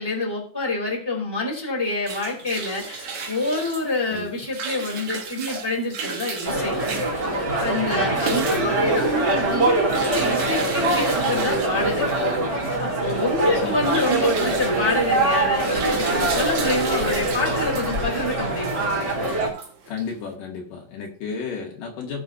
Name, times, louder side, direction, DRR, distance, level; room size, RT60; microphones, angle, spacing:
voice 1, 0.0-6.8 7.6-12.1 12.8-18.8, left 2 dB, 5° left, -2 dB, 2.9 m, -27 dB
sound 1, 1.8-20.3, right 4 dB, 50° right, 2.0 m, -34 dB
sound 2, 6.4-19.5, right 2 dB, 25° right, 4.1 m, -23 dB
voice 2, 13.5-13.9 19.9-22.2, left 5 dB, 75° left, 0 dB, 3.5 m, -33 dB
17.5 x 7.0 x 2.7 m, 0.43 s
omnidirectional pair, 3.9 m